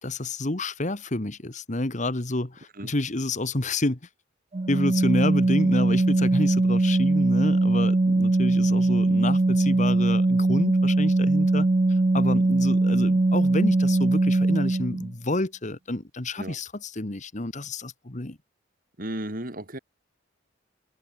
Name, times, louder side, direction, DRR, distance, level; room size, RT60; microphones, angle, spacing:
voice 1, 0.0-4.0 4.7-18.4, left 2 dB, 40° left, 1.6 m, -29 dB
Organ, 4.5-15.1, right 2 dB, 30° right, 0.5 m, -21 dB
voice 2, 19.0-19.8, right 1 dB, 45° right, 4.1 m, -34 dB
head